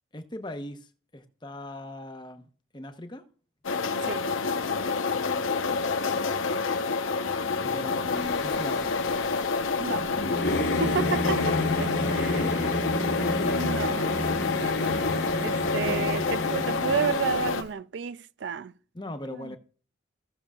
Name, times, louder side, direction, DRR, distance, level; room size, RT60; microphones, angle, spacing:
voice 1, 0.1-2.5 2.7-3.2 7.6-9.0 12.0-12.6 18.9-19.6, left 1 dB, 25° left, 0.9 m, -39 dB
sound 1, 3.6-17.6, left 4 dB, 90° left, 0.9 m, -28 dB
Singing / Musical instrument, 8.1-17.6, left 2 dB, 55° left, 1.5 m, -30 dB
voice 2, 9.8-10.1 10.6-12.5 13.5-18.7 19.3-19.6, right 6 dB, 60° right, 0.4 m, -32 dB
16.0 x 6.9 x 2.4 m
head